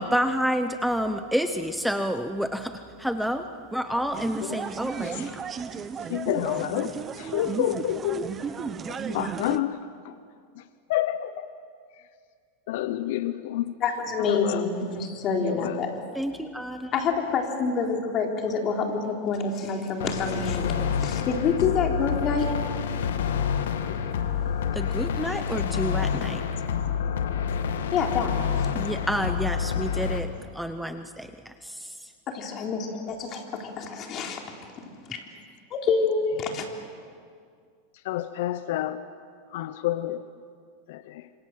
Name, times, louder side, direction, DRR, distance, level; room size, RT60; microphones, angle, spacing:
voice 1, 0.0-3.4 3.7-5.4 16.2-16.9 24.7-26.4 28.7-30.3 30.5-31.9, equal, ahead, 8 dB, 0.9 m, -29 dB
sound 1, 4.1-9.6, right 6 dB, 25° right, 1.1 m, -34 dB
voice 2, 5.0-5.4 6.1-8.3 8.9-10.2 10.6-10.7 10.9-11.5 12.7-13.7 14.2-14.6 15.4-15.8 23.8-24.1 38.0-39.0 39.5-40.2 40.9-41.3, left 13 dB, 70° left, 12 dB, 0.9 m, -29 dB
voice 3, 13.8-15.9 16.9-22.5 27.9-28.3 32.3-34.7 35.1-35.2 35.7-36.7, left 5 dB, 35° left, 2 dB, 3.9 m, -27 dB
sound 2, 20.0-30.2, left 7 dB, 90° left, 2.0 m, -28 dB
27.0 x 26.0 x 7.7 m, 2.2 s
supercardioid pair, 135°, 0 cm